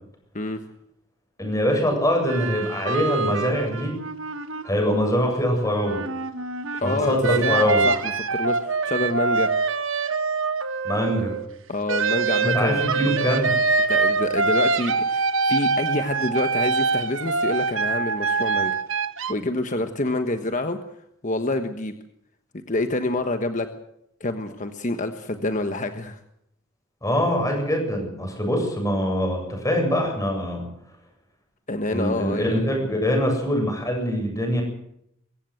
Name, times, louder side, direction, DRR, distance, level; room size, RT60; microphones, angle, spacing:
voice 1, 1.4-3.9 4.6-6.0 6.8-7.9 10.8-11.4 12.4-13.5 27.0-30.7 31.9-34.6, equal, 15° left, 2 dB, 7.8 m, -23 dB
sound 1, 2.3-5.3 5.6-11.4 11.9-19.3, right 4 dB, 70° right, 1.4 m, -25 dB
voice 2, 6.8-8.0 8.3-9.5 11.7-12.8 13.9-18.7 19.3-20.8 21.2-21.9 22.7-23.7 24.2-26.2 31.7-32.6, left 2 dB, 35° left, 7 dB, 1.3 m, -27 dB
23.0 x 16.0 x 7.9 m, 0.76 s
head